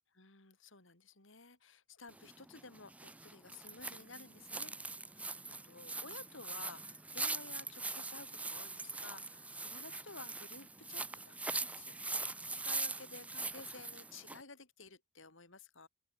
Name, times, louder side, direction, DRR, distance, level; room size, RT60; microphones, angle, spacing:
voice 1, 0.2-15.9, left 3 dB, 65° left, 4.2 m, -54 dB
sound 1, 2.1-14.4, right 3 dB, 5° right, 0.5 m, -42 dB
open air
head